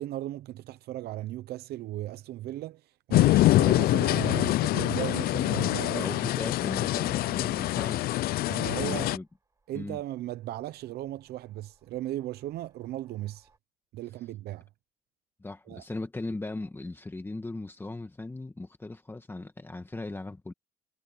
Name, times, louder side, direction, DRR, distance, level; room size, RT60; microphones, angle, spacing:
voice 1, 0.0-6.3 8.5-9.1 9.7-13.5 13.9-14.7 15.7-15.8, right 14 dB, 70° right, 0.8 m, -37 dB
sound 1, 3.1-9.2, left 16 dB, 65° left, 0.4 m, -25 dB
voice 2, 5.9-8.1 8.6-9.3 9.7-10.0 15.4-20.5, left 2 dB, 15° left, 1.7 m, -38 dB
sound 2, 8.7-13.6, right 3 dB, 20° right, 7.8 m, -70 dB
cardioid pair, 110°, 17 cm